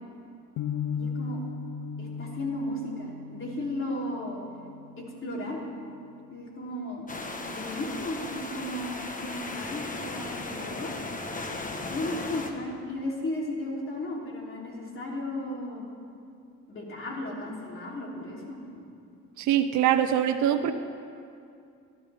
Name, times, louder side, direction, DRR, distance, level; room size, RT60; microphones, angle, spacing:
sound 1, 0.6-6.6, left 5 dB, 90° left, 0.6 m, -38 dB
voice 1, 0.9-1.4 2.0-4.4 5.0-5.6 6.3-7.1 7.5-10.9 11.9-15.8 16.7-18.8, left 1 dB, 45° left, -3 dB, 3.3 m, -35 dB
Ocean Waves Loop - Night, 7.1-12.5, left 2 dB, 25° left, 1.2 m, -36 dB
voice 2, 19.4-20.7, right 10 dB, 75° right, 7 dB, 0.7 m, -23 dB
17.5 x 12.0 x 3.5 m, 2.4 s
cardioid pair, 90°, 30 cm